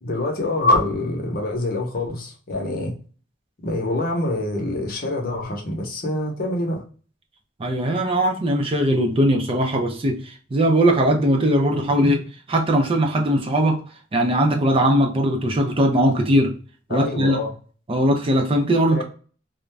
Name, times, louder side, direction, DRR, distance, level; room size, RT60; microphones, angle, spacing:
voice 1, 0.0-2.9 3.6-6.8 16.9-17.5 18.9-19.0, left 1 dB, 50° left, 0.8 m, -25 dB
voice 2, 7.6-12.2 12.5-13.8 14.1-16.5 16.9-17.4 17.9-19.0, right 1 dB, 30° right, 0.5 m, -20 dB
2.5 x 2.1 x 3.1 m
head